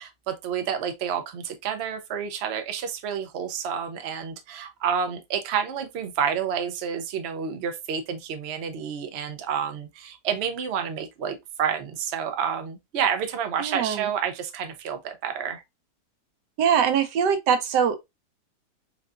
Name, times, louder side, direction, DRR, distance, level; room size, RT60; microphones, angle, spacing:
voice 1, 0.0-15.6, right 7 dB, 60° right, 0.7 m, -29 dB
voice 2, 16.6-18.0, right 7 dB, 85° right, 1.3 m, -22 dB
3.8 x 3.4 x 2.4 m
omnidirectional pair, 1.8 m